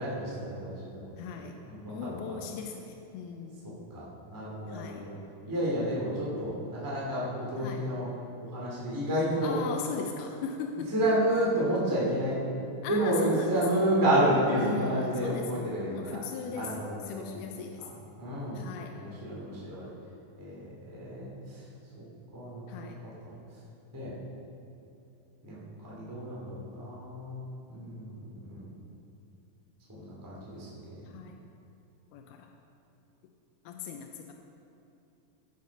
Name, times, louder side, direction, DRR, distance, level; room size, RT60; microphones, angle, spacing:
voice 1, 0.0-1.0 1.3-2.4 3.9-5.1 5.5-8.1 8.4-9.6 10.9-12.4 12.8-16.2 16.5-17.4 18.2-18.6 18.9-19.9 20.4-21.6 22.0-22.1 22.3-23.3 23.9-24.1 25.4-27.4 27.7-28.7 29.9-31.1, right 1 dB, 5° right, -7 dB, 1.9 m, -30 dB
voice 2, 1.2-1.6 1.9-3.8 4.7-5.1 7.6-7.9 9.4-10.9 12.8-13.8 14.3-16.7 17.1-17.9 18.5-19.0 22.7-23.0 31.1-31.4 32.1-32.5 33.7-34.3, left 6 dB, 90° left, 3 dB, 2.6 m, -39 dB
16.5 x 6.6 x 5.3 m, 2.8 s
omnidirectional pair, 4.4 m